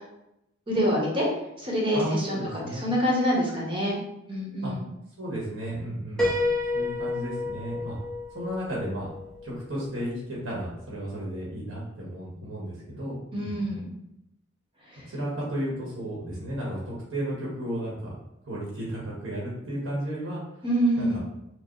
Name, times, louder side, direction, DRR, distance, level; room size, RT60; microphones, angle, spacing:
voice 1, 0.7-1.3 1.6-2.4 2.8-4.0 4.3-4.8 13.3-13.8 20.6-21.2, equal, 25° right, -3 dB, 1.0 m, -25 dB
voice 2, 1.9-2.9 4.6-4.7 5.2-6.3 6.7-8.0 8.3-9.1 9.4-13.8 15.1-18.1 18.4-20.4 20.9-21.2, equal, 85° right, -5 dB, 1.1 m, -33 dB
Piano, 6.2-9.9, left 2 dB, 5° left, 0.6 m, -30 dB
4.6 x 2.0 x 3.0 m, 0.84 s
head